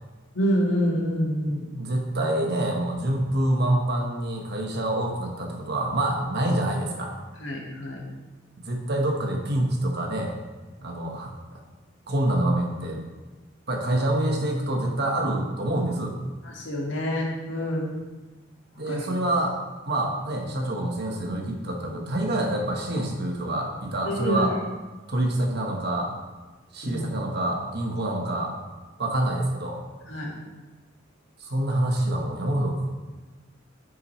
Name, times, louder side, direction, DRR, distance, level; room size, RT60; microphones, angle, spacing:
voice 1, 0.3-1.6 7.4-8.0 16.5-17.9 18.9-19.1 24.0-24.5 26.8-27.0 30.1-30.4, equal, 70° left, -2 dB, 1.9 m, -27 dB
voice 2, 1.5-7.1 8.6-10.3 10.8-11.3 12.1-13.0 13.7-16.2 18.8-19.6 19.9-24.6 25.1-26.1 26.7-28.5 29.0-29.8 31.4-32.8, right 1 dB, 60° right, 1 dB, 1.3 m, -26 dB
9.2 x 5.9 x 3.2 m, 1.3 s
head